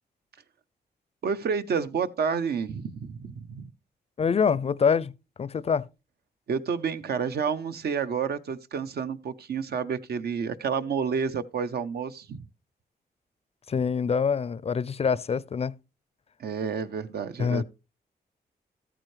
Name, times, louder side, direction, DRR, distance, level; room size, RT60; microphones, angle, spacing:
voice 1, 1.2-3.7 6.5-12.4 16.4-17.6, right 6 dB, 75° right, 0.8 m, -30 dB
voice 2, 4.2-5.1 5.4-5.9 13.7-15.8 17.4-17.6, left 6 dB, 40° left, 0.4 m, -25 dB
13.5 x 8.8 x 3.2 m
wide cardioid pair, 115°, 17 cm